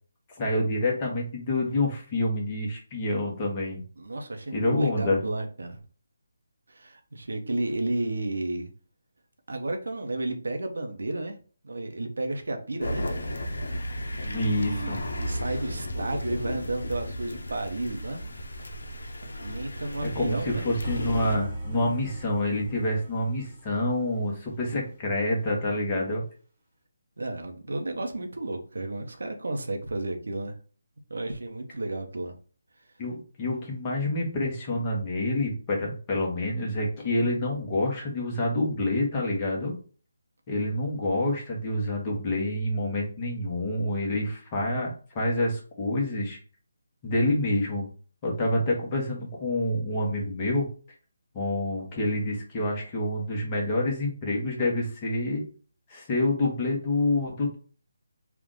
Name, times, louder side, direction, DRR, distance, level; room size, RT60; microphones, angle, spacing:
voice 1, 0.4-3.8 4.5-5.2 14.3-15.0 20.0-26.2 33.0-39.7 40.5-46.4 47.0-47.9 48.2-50.7 51.3-55.4 55.9-57.6, left 1 dB, 25° left, -1 dB, 1.2 m, -27 dB
voice 2, 4.0-5.8 6.7-8.7 9.5-11.4 11.6-13.0 14.2-18.2 19.2-20.6 27.2-30.5 31.1-32.3, right 2 dB, 75° right, 4 dB, 0.9 m, -32 dB
sound 1, 12.8-21.4, equal, 75° left, 0.7 m, -34 dB
sound 2, 20.8-24.9, right 1 dB, 20° right, 1.3 m, -37 dB
3.5 x 2.5 x 3.8 m, 0.40 s
figure-of-eight pair, 155°, 0 cm